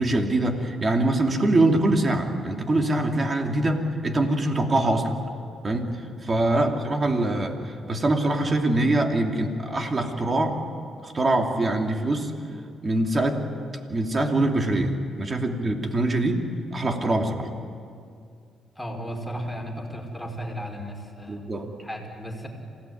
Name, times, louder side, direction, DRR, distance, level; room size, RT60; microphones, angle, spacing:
voice 1, 0.0-5.2 5.6-5.9 6.2-7.6 7.9-10.6 11.0-12.3 12.8-13.4 13.9-16.4 16.7-17.5 21.3-21.7, right 2 dB, 30° right, 3 dB, 2.9 m, -23 dB
voice 2, 18.8-21.5 21.8-22.5, equal, 5° left, 0 dB, 5.1 m, -35 dB
27.0 x 17.5 x 9.5 m, 2.3 s
cardioid pair, 90°, 0 cm